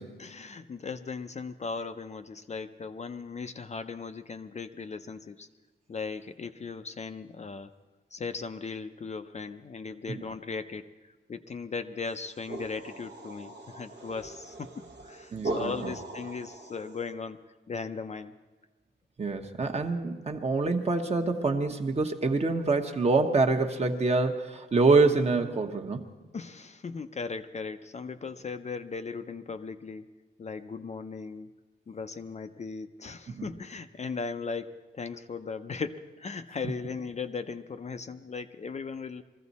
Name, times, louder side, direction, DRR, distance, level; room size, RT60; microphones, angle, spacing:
voice 1, 0.2-5.5 5.9-7.7 8.1-10.9 11.3-18.3 26.3-30.1 30.4-31.5 31.9-39.2, left 4 dB, 35° left, 8 dB, 0.5 m, -38 dB
sound 1, 12.1-17.1, right 2 dB, 65° right, 1.1 m, -40 dB
voice 2, 15.3-15.9 19.2-26.1 33.3-33.5, right 3 dB, 35° right, 3 dB, 1.0 m, -26 dB
21.5 x 15.0 x 4.1 m, 1.2 s
wide cardioid pair, 165°, 19 cm